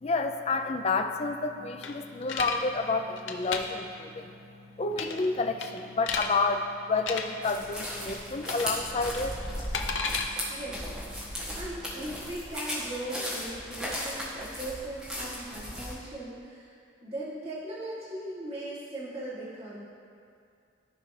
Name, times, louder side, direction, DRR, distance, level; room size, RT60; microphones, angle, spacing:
voice 1, 0.0-4.3 4.8-9.3 10.2-10.3, left 3 dB, 30° left, 6 dB, 0.4 m, -29 dB
sound 1, 1.6-12.1, left 1 dB, 15° left, 1.7 m, -55 dB
sound 2, 1.8-2.6 3.2-3.6 4.9-5.3 5.6-6.3 7.0-7.2 8.4-8.8 9.1-10.3, left 6 dB, 80° left, 0.6 m, -32 dB
sound 3, 7.4-15.9, equal, 5° right, 1.5 m, -36 dB
voice 2, 10.5-10.8 11.1-16.7 17.0-19.8, right 1 dB, 30° right, -8 dB, 1.6 m, -39 dB
14.5 x 4.8 x 3.2 m, 2.4 s
head